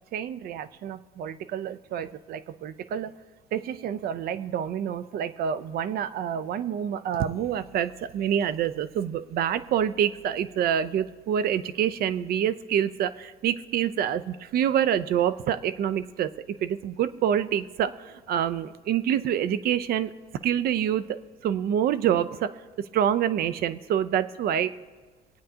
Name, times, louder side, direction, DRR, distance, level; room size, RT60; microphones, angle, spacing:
voice 1, 0.1-3.1 3.5-16.3 16.6-20.1 20.4-21.0 21.4-22.5 22.9-24.7, right 9 dB, 65° right, 14 dB, 0.6 m, -27 dB
26.5 x 8.8 x 2.8 m, 1.3 s
cardioid pair, 110°, 17 cm